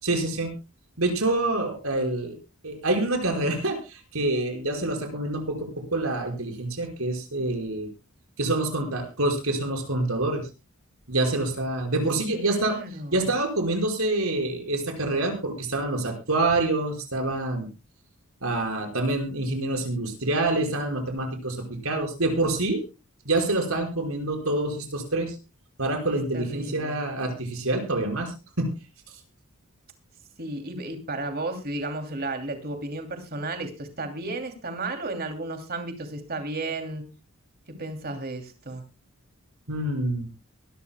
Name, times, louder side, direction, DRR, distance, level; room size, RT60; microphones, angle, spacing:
voice 1, 0.0-0.5 1.0-2.4 2.6-7.9 8.4-10.5 11.1-12.8 13.1-17.7 18.4-21.6 21.8-22.8 23.3-25.4 25.8-28.7 29.1-29.2 39.7-40.3, right 2 dB, 75° right, 4 dB, 5.3 m, -26 dB
voice 2, 12.3-13.2 26.3-27.0 30.4-37.0 37.8-38.8, right 2 dB, 45° right, 6 dB, 2.8 m, -33 dB
22.5 x 13.0 x 2.2 m, 0.29 s
head